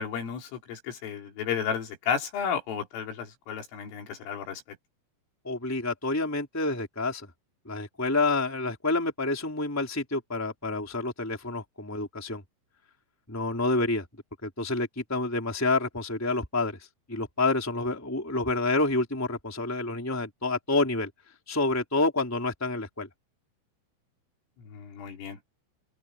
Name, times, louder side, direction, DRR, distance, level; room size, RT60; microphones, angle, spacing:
voice 1, 0.0-4.6 24.6-25.4, left 7 dB, 90° left, 6.6 m, -33 dB
voice 2, 5.4-7.3 7.6-12.4 13.3-14.0 14.4-16.8 17.1-21.1 21.5-23.1, left 2 dB, 5° left, 3.3 m, -28 dB
open air
omnidirectional pair, 5.6 m